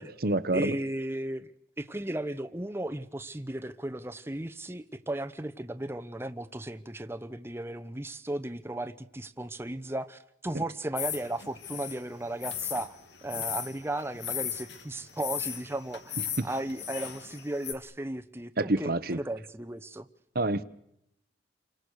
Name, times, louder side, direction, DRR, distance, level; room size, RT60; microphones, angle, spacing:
voice 1, 0.0-0.8 16.4-16.5 18.6-19.2 20.3-20.6, right 2 dB, 55° right, 1.0 m, -27 dB
voice 2, 0.5-1.5 1.8-13.0 13.2-20.1, right 1 dB, 15° right, 0.9 m, -35 dB
sound 1, 11.0-17.7, left 8 dB, 65° left, 2.2 m, -37 dB
29.0 x 24.5 x 6.5 m
head